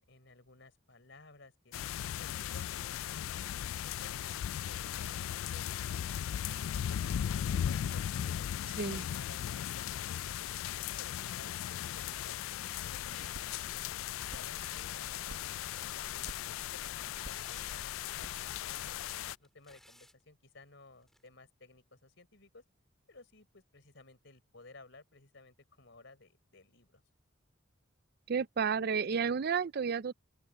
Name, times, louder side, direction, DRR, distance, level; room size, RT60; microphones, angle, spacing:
voice 1, 0.0-3.3 3.8-8.5 8.9-12.4 12.8-15.9 16.3-16.4 16.7-22.6 23.1-27.0, left 3 dB, 60° left, 4.7 m, -57 dB
sound 1, 1.7-19.4, left 10 dB, 85° left, 0.3 m, -37 dB
sound 2, 12.9-19.1, right 2 dB, 85° right, 1.1 m, -53 dB
sound 3, 19.4-20.2 21.0-21.3, equal, ahead, 2.4 m, -60 dB
voice 2, 28.3-30.1, right 6 dB, 50° right, 0.4 m, -31 dB
open air
head